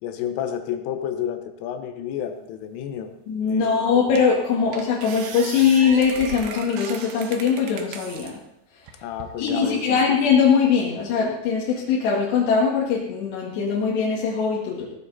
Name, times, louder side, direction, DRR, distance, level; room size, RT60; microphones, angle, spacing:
voice 1, 0.0-3.1 3.5-3.8 9.0-10.0, left 9 dB, 75° left, 7 dB, 3.5 m, -30 dB
voice 2, 3.3-8.4 9.4-14.9, left 6 dB, 60° left, -5 dB, 3.8 m, -21 dB
sound 1, 3.5-3.6 4.2-4.4 4.7-8.3 8.9-9.5, right 7 dB, 85° right, 2.0 m, -37 dB
17.5 x 13.0 x 4.2 m, 0.79 s
omnidirectional pair, 5.9 m